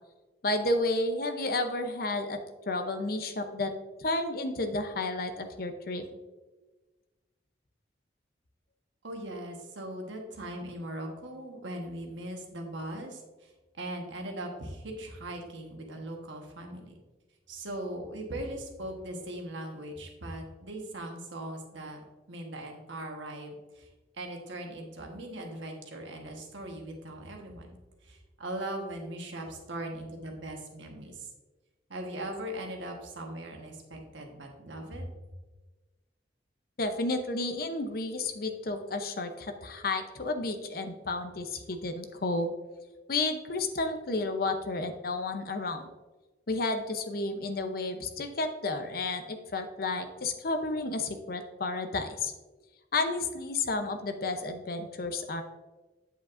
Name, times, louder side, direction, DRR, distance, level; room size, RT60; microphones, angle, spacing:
voice 1, 0.4-2.4 2.7-3.7 4.0-6.0 36.8-42.5 43.1-45.8 46.5-52.3 52.9-55.4, left 2 dB, 50° left, 7 dB, 0.7 m, -31 dB
voice 2, 9.0-17.0 17.5-22.0 22.3-23.9 24.1-27.8 28.0-31.3 31.9-35.0, right 1 dB, 80° right, 2 dB, 1.3 m, -40 dB
8.0 x 7.2 x 2.5 m, 1.2 s
head